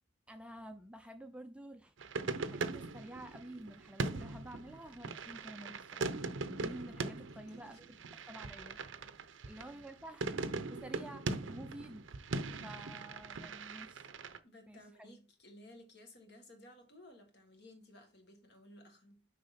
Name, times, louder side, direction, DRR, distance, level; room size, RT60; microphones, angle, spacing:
voice 1, 0.3-1.9 2.5-6.2 6.5-8.8 9.4-10.3 10.7-12.1 12.5-14.1 14.7-14.8, right 1 dB, 5° right, 0.4 m, -50 dB
sound 1, 2.0-14.4, right 3 dB, 70° right, 0.6 m, -41 dB
voice 2, 6.7-8.1 9.2-9.8 14.4-19.3, left 1 dB, 55° left, 1.8 m, -58 dB
6.6 x 4.8 x 4.2 m
head